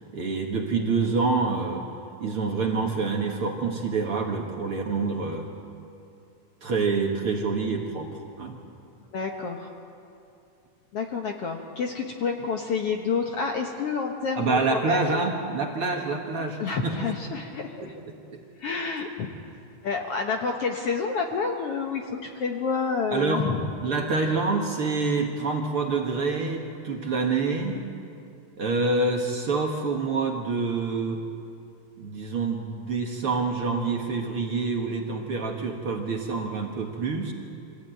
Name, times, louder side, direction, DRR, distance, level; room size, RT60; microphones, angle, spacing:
voice 1, 0.1-1.8 2.2-5.5 6.6-8.6 14.4-17.1 18.3-18.4 23.1-23.4 23.8-27.8 28.6-31.2 32.0-37.3, right 4 dB, 50° right, 1 dB, 2.0 m, -27 dB
voice 2, 9.1-9.7 10.9-15.3 16.6-17.9 18.6-19.3 19.8-23.7, left 5 dB, 60° left, 2 dB, 1.7 m, -29 dB
24.5 x 16.0 x 9.1 m, 2.6 s
omnidirectional pair, 3.8 m